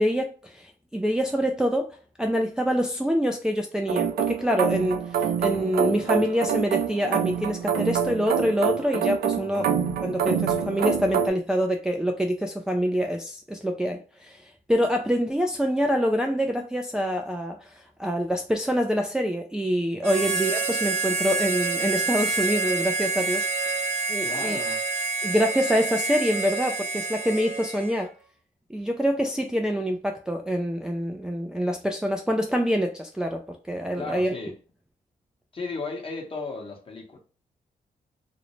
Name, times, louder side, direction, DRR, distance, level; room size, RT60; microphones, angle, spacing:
voice 1, 0.0-9.7 10.0-23.5 24.1-24.6 25.2-28.1 28.7-33.4 33.7-34.3, equal, 5° right, 0.3 m, -26 dB
sound 1, 3.9-11.3, right 7 dB, 75° right, 0.5 m, -26 dB
Harmonica, 20.0-28.1, right 3 dB, 45° right, 0.9 m, -28 dB
voice 2, 24.2-24.8 34.0-34.6 35.5-37.2, left 3 dB, 35° left, 1.0 m, -35 dB
2.5 x 2.0 x 3.0 m
cardioid pair, 70°, 16 cm